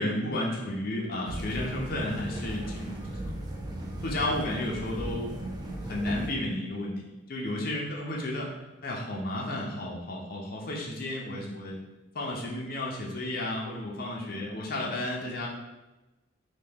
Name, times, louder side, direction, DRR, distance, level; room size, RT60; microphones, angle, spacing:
voice 1, 0.0-3.3 3.7-5.3 5.8-6.9 7.3-8.5 8.8-11.8 12.1-15.5, left 1 dB, 45° left, -3 dB, 0.6 m, -32 dB
sound 1, 1.2-6.3, right 1 dB, 20° right, 0.3 m, -36 dB
3.0 x 2.2 x 3.5 m, 1.1 s
head